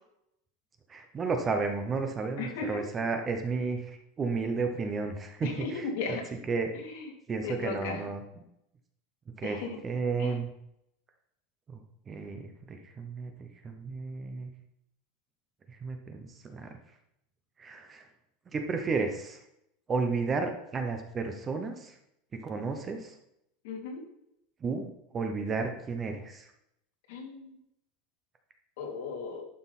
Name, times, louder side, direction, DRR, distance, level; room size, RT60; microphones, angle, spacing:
voice 1, 0.9-6.2 6.5-6.7 7.3-8.2 9.4-10.5 11.7-14.5 15.7-16.7 17.6-18.1 18.5-19.4 19.9-22.0 22.3-23.2 24.6-26.5, right 4 dB, 15° right, 6 dB, 0.7 m, -33 dB
voice 2, 2.4-2.8 5.4-6.2 6.8-7.1 7.4-8.1 9.4-9.8 10.2-10.4 23.6-24.1 27.1-27.5 28.8-29.4, left 4 dB, 60° left, 0 dB, 2.9 m, -36 dB
11.5 x 6.0 x 4.2 m, 0.79 s
supercardioid pair, 180°, 0 cm